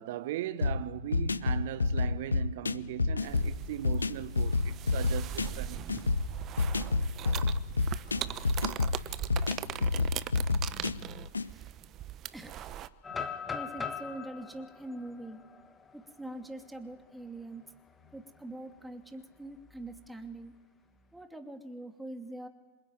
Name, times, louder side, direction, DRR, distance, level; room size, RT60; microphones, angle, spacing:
voice 1, 0.0-5.8 13.2-13.3, right 14 dB, 55° right, 1.3 m, -39 dB
sound 1, 0.6-11.5, left 3 dB, 75° left, 0.8 m, -30 dB
sound 2, 3.2-12.9, right 11 dB, 35° right, 1.0 m, -40 dB
voice 2, 12.3-12.7 13.5-15.4 15.9-17.6 18.1-20.5 21.1-22.5, right 1 dB, 5° right, 2.7 m, -44 dB
sound 3, 13.0-16.9 17.4-17.5 18.0-18.3 19.6-20.5, left 6 dB, 15° left, 1.8 m, -41 dB
27.0 x 24.5 x 9.2 m
figure-of-eight pair, 90°, 0 cm